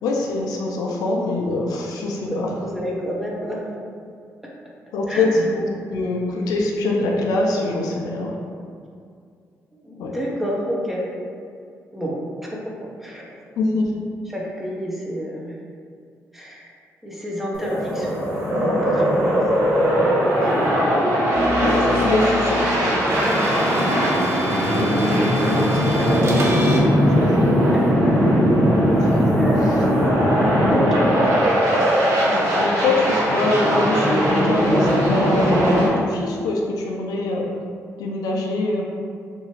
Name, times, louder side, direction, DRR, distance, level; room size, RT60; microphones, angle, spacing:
voice 1, 0.0-2.5 4.9-8.4 10.0-10.1 13.6-13.9 21.6-22.9 25.2-25.3 27.2-27.5 29.0-29.3 31.1-31.2 32.3-37.5 38.0-38.8, left 2 dB, 85° left, -1 dB, 0.4 m, -24 dB
voice 2, 2.6-3.6 5.1-5.5 5.9-6.1 9.7-11.1 11.9-13.4 14.3-15.6 16.3-16.7 17.0-19.4 19.9-20.6 22.8-23.4 25.3-26.1 27.7-28.1 29.4-30.2 30.7-31.5, equal, 5° right, -4 dB, 0.7 m, -30 dB
sound 1, 17.5-35.9, equal, 80° right, 0.8 m, -19 dB
sound 2, 21.3-26.8, equal, 45° right, 0.6 m, -28 dB
2.9 x 2.6 x 2.9 m, 2.3 s
supercardioid pair, 60°, 6 cm